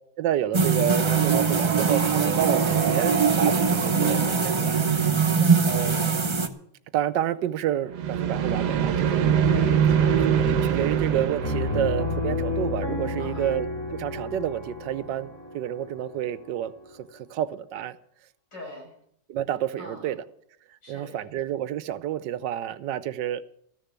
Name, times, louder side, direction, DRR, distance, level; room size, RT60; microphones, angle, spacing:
voice 1, 0.2-5.1 5.6-5.9 6.9-9.2 10.2-18.0 19.3-20.2 20.9-23.4, right 11 dB, 85° right, 1.4 m, -29 dB
sound 1, 0.5-6.5, right 5 dB, 25° right, 0.6 m, -23 dB
sound 2, 1.0-5.3 7.9-12.9, right 8 dB, 70° right, 1.5 m, -25 dB
voice 2, 5.1-5.5 9.5-10.3 13.2-13.6 18.5-18.9 19.8-20.1 20.8-21.2, left 1 dB, 85° left, 6.4 m, -42 dB
Piano, 11.4-17.0, left 3 dB, 15° left, 2.2 m, -31 dB
14.5 x 6.8 x 9.5 m
omnidirectional pair, 1.9 m